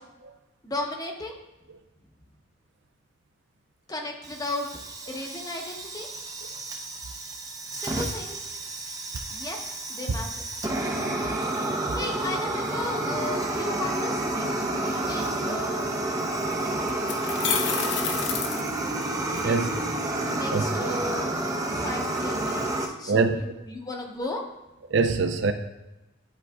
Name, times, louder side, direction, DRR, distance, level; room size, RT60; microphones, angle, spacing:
voice 1, 0.6-1.3 3.9-4.7 5.1-6.1 7.7-8.5 9.3-9.6 9.9-10.4 11.7-15.9 19.4-19.8 20.3-24.4, left 2 dB, 20° left, 2 dB, 0.7 m, -35 dB
Fire, 4.2-22.9, right 2 dB, 15° right, 0.6 m, -30 dB
voice 2, 10.8-11.2 13.7-13.8 16.2-16.4 19.4-19.7 20.5-20.7 23.0-23.4 24.9-25.5, right 4 dB, 65° right, 7 dB, 0.5 m, -24 dB
sound 1, 16.9-19.4, left 6 dB, 60° left, 0.6 m, -29 dB
10.5 x 4.6 x 2.3 m, 0.99 s
head